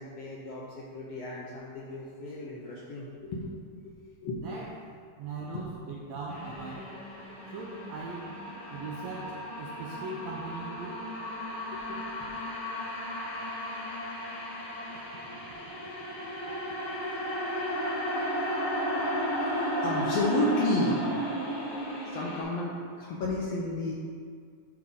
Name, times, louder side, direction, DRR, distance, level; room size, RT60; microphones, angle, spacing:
voice 1, 0.0-3.6 3.8-3.9 4.2-4.7 5.5-5.7 11.6-12.3 15.8-15.9 19.5-21.1 22.0-23.9, left 1 dB, 75° left, -4 dB, 1.5 m, -33 dB
voice 2, 4.3-4.7 5.2-6.9 7.5-8.3 8.7-11.0 16.5-16.6 17.3-17.4, right 3 dB, 80° right, -2 dB, 1.5 m, -40 dB
sound 1, 6.3-22.4, equal, 40° left, 1.2 m, -34 dB
10.5 x 3.8 x 3.6 m, 2.1 s
omnidirectional pair, 3.6 m